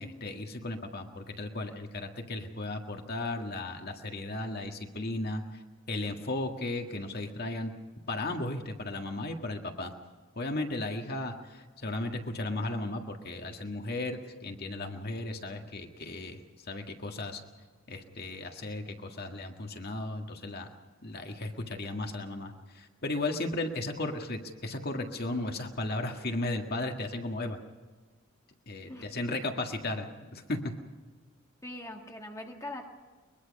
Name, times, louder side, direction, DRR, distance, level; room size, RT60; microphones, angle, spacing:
voice 1, 0.0-5.6 5.9-7.7 8.1-9.9 10.4-16.4 16.7-17.4 17.9-20.7 21.0-27.6 28.7-30.6, left 2 dB, 50° left, 4 dB, 1.8 m, -35 dB
voice 2, 31.6-32.9, left 1 dB, 15° left, 2 dB, 1.7 m, -41 dB
22.5 x 22.0 x 5.4 m, 1.4 s
head